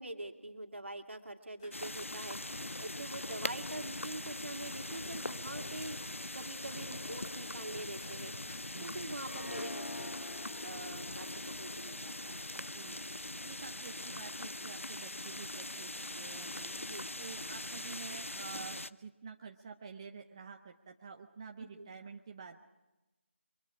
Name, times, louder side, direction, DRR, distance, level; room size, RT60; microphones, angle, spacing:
voice 1, 0.0-8.3 8.8-10.1 10.6-12.5 16.8-17.0 21.6-21.9, right 1 dB, 70° right, 5 dB, 2.4 m, -45 dB
sound 1, 1.6-11.6, left 5 dB, 15° left, 1.2 m, -61 dB
sound 2, 1.7-18.9, left 2 dB, 85° left, 0.7 m, -42 dB
voice 2, 8.6-9.2 12.5-13.0 13.4-16.7 17.2-22.6, right 5 dB, 25° right, 4 dB, 0.7 m, -49 dB
Harp, 9.2-14.3, left 2 dB, 70° left, 1.1 m, -48 dB
28.0 x 23.5 x 4.9 m, 1.0 s
figure-of-eight pair, 160°, 7 cm